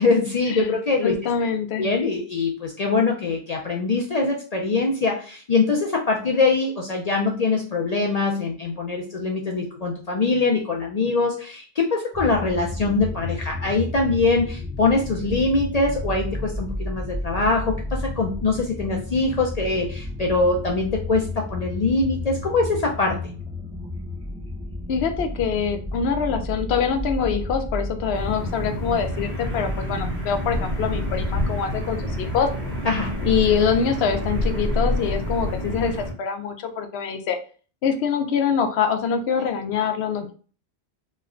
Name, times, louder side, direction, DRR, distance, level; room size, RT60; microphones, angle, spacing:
voice 1, 0.0-1.3 1.8-23.2 32.8-33.2, left 3 dB, 50° left, 0 dB, 0.5 m, -23 dB
voice 2, 1.0-1.9 24.9-32.5 33.2-37.4 37.8-40.3, left 6 dB, 70° left, 6 dB, 0.8 m, -24 dB
sound 1, 12.1-31.5, left 2 dB, 10° right, 0.4 m, -32 dB
sound 2, 28.1-36.1, left 1 dB, 70° right, 1.5 m, -28 dB
3.1 x 2.1 x 3.6 m, 0.38 s
omnidirectional pair, 1.1 m